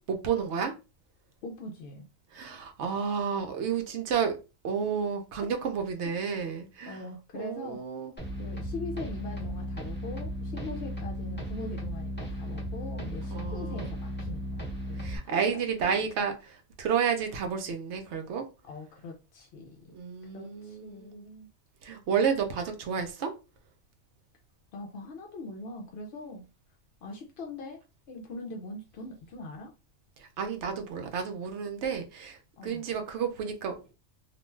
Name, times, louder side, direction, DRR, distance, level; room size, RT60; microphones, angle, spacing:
voice 1, 0.1-0.7 2.3-4.3 4.6-7.0 7.3-8.1 13.3-13.9 15.0-18.4 19.9-21.2 21.8-23.3 30.2-33.9, right 7 dB, 65° right, 0.8 m, -31 dB
voice 2, 1.4-2.1 6.9-7.8 8.4-16.0 18.6-19.9 20.2-21.5 24.7-26.4 27.0-27.8 28.1-29.7 32.6-32.8, left 2 dB, 65° left, 0.6 m, -42 dB
sound 1, 8.2-15.2, equal, 15° left, 0.4 m, -36 dB
2.5 x 2.2 x 3.0 m
omnidirectional pair, 1.4 m